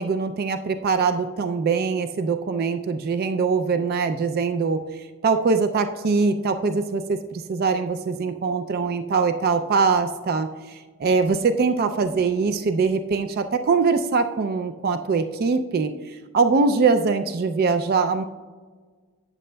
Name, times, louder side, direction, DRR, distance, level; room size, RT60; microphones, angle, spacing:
voice 1, 0.0-4.8 5.2-15.9 16.3-18.2, right 4 dB, 45° right, 8 dB, 0.3 m, -22 dB
12.0 x 8.4 x 2.2 m, 1.5 s
head